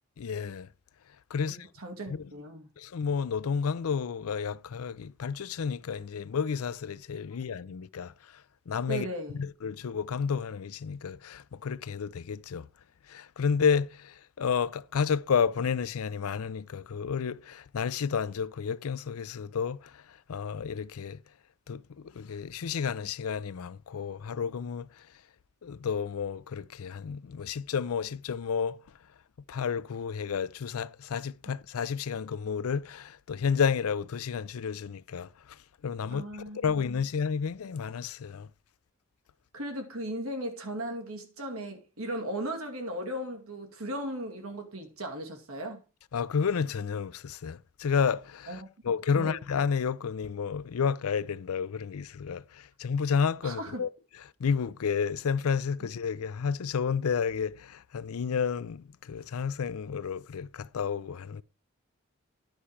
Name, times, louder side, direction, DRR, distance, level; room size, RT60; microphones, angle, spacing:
voice 1, 0.2-0.7 1.3-1.7 2.1-2.2 2.8-8.1 8.7-9.1 9.4-12.7 13.1-20.0 20.3-21.2 21.7-24.9 25.6-28.8 29.5-35.3 35.8-36.2 36.5-38.5 46.1-53.9 54.4-61.4, left 6 dB, 90° left, 0.5 m, -31 dB
voice 2, 1.4-2.7 8.9-9.4 36.1-36.8 39.5-45.8 48.5-49.4 53.4-53.9 55.8-55.9, right 1 dB, 85° right, 2.2 m, -37 dB
10.5 x 5.7 x 4.8 m
head